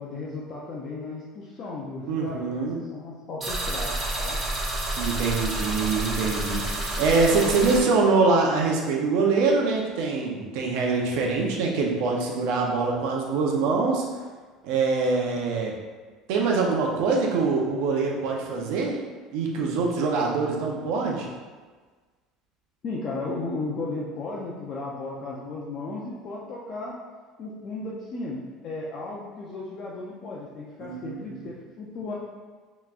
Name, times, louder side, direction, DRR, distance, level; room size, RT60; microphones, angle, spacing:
voice 1, 0.0-4.4 22.8-27.0 27.4-32.2, left 3 dB, 35° left, -5 dB, 0.5 m, -35 dB
voice 2, 2.1-2.8 5.0-14.0 14.6-15.7 16.3-19.0 19.3-21.3 30.8-31.3, right 4 dB, 70° right, 0 dB, 0.8 m, -24 dB
sound 1, 3.4-7.8, right 1 dB, 20° right, 0.8 m, -29 dB
5.6 x 3.1 x 2.5 m, 1.4 s
cardioid pair, 160°, 0 cm